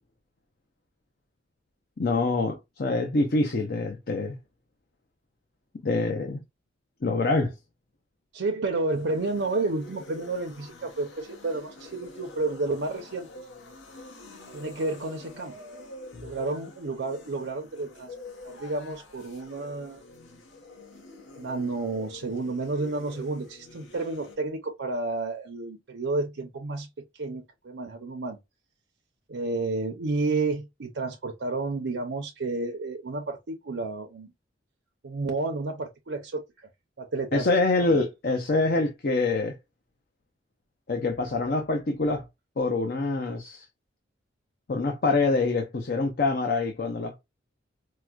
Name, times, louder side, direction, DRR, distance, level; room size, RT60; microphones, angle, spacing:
voice 1, 2.0-4.4 5.8-6.4 7.0-7.5 16.1-16.3 37.3-39.6 40.9-42.2 42.6-43.6 44.7-47.2, left 3 dB, 50° left, 0.5 m, -25 dB
voice 2, 8.3-13.3 14.5-15.5 16.2-18.1 18.4-20.0 21.4-26.9 27.2-28.4 29.3-34.3 35.0-36.7 37.0-37.5 37.8-38.0, right 3 dB, 75° right, 0.6 m, -31 dB
sound 1, 8.7-24.4, left 2 dB, 75° left, 1.1 m, -47 dB
4.6 x 2.1 x 2.3 m
head